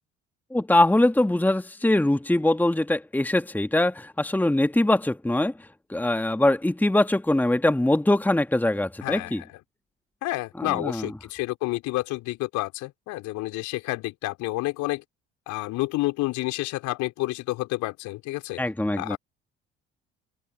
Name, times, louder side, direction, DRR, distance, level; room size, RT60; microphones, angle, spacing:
voice 1, 0.5-9.4 10.6-11.1 18.6-19.2, left 1 dB, 5° left, 1.9 m, -22 dB
voice 2, 9.0-9.3 10.2-15.0 15.5-18.6 19.0-19.2, left 20 dB, 55° left, 5.0 m, -29 dB
open air
figure-of-eight pair, 55°, 34 cm